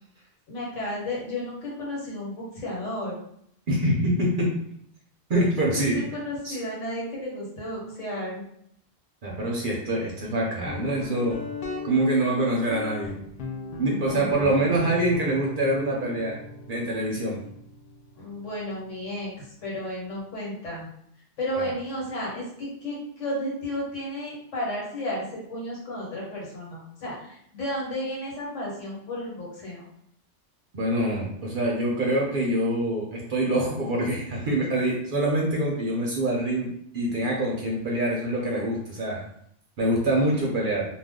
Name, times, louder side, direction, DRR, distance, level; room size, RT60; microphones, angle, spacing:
voice 1, 0.5-3.2 5.7-8.4 13.9-14.6 18.1-20.9 21.4-29.8, left 1 dB, 80° left, -4 dB, 1.4 m, -33 dB
voice 2, 3.7-4.5 5.3-6.0 6.4-6.6 9.2-11.4 11.8-13.1 13.8-16.4 16.7-17.4 21.6-21.7 30.7-39.2 39.8-40.9, right 1 dB, 55° right, -2 dB, 0.7 m, -25 dB
Guitar, 10.6-20.1, left 3 dB, 60° left, 0.6 m, -39 dB
2.5 x 2.3 x 3.5 m, 0.70 s
omnidirectional pair, 1.2 m